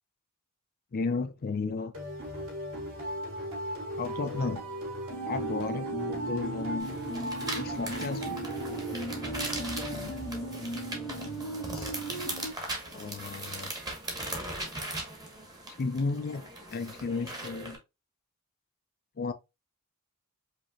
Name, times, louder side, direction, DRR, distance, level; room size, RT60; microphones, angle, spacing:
voice 1, 0.9-1.9 4.0-4.7 5.2-6.9 7.5-8.4 11.1-11.2 11.7-11.8 12.9-13.7 15.8-17.8 19.2-19.3, left 4 dB, 45° left, 0.4 m, -34 dB
sound 1, 1.9-10.9, right 1 dB, 70° right, 2.6 m, -38 dB
sound 2, 5.1-12.5, right 2 dB, 80° left, 1.6 m, -37 dB
sound 3, 6.8-17.8, right 2 dB, 20° right, 1.1 m, -39 dB
5.0 x 2.8 x 2.7 m
head